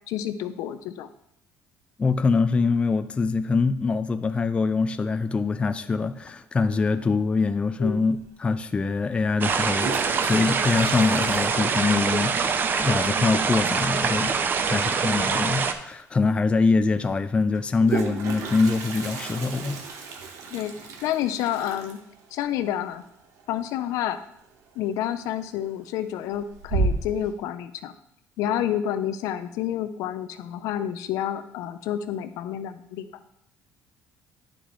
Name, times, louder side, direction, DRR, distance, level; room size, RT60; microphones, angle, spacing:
voice 1, 0.1-1.1 7.8-8.0 20.5-20.7 21.0-22.0 22.3-23.0 23.5-24.2 24.8-27.9 28.4-33.1, left 11 dB, 75° left, 11 dB, 0.6 m, -29 dB
voice 2, 2.0-10.0 10.2-14.3 14.7-19.8, left 4 dB, 20° left, 10 dB, 0.4 m, -24 dB
Toilet flush, 8.2-8.3 9.5-12.3 12.5-12.6 12.9-13.0 13.3-13.7 15.4-15.5 15.9-16.0 17.5-24.2 24.5-24.9 25.4-25.9 26.3-27.3, right 4 dB, 65° right, 1.2 m, -33 dB
sound 1, 9.4-15.7, right 5 dB, 35° right, 0.6 m, -24 dB
10.0 x 6.1 x 3.1 m, 0.78 s
cardioid pair, 120°, 6 cm